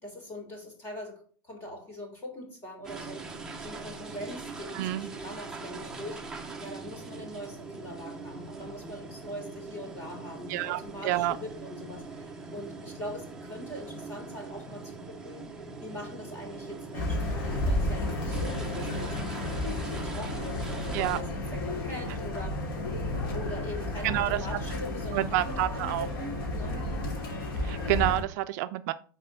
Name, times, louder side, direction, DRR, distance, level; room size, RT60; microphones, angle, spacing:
voice 1, 0.0-3.3 3.6-15.5 15.8-22.8 23.3-26.8, left 1 dB, 20° left, 1 dB, 2.8 m, -42 dB
sound 1, 2.8-21.2, right 4 dB, 5° right, 0.8 m, -42 dB
voice 2, 4.7-5.1 10.5-11.4 20.9-21.2 24.0-24.4 25.1-26.1 27.6-28.9, right 15 dB, 50° right, 10 dB, 0.4 m, -28 dB
sound 2, 16.9-28.2, left 1 dB, 90° left, 2.8 m, -32 dB
6.5 x 4.3 x 6.6 m, 0.43 s
supercardioid pair, 160°, 12 cm